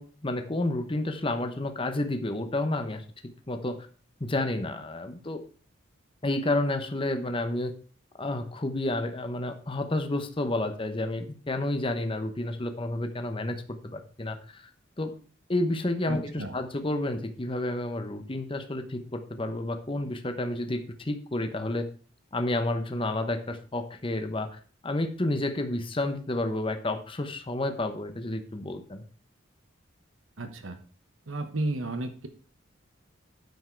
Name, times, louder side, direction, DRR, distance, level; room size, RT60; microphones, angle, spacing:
voice 1, 0.0-3.0 3.5-3.8 4.2-5.4 6.2-7.7 8.2-14.7 15.0-15.1 15.5-21.9 22.3-29.0, left 1 dB, 25° left, 7 dB, 0.9 m, -30 dB
voice 2, 16.1-16.6 30.4-30.8 31.3-32.3, right 2 dB, 85° right, 7 dB, 1.2 m, -33 dB
9.4 x 7.3 x 4.6 m, 0.41 s
head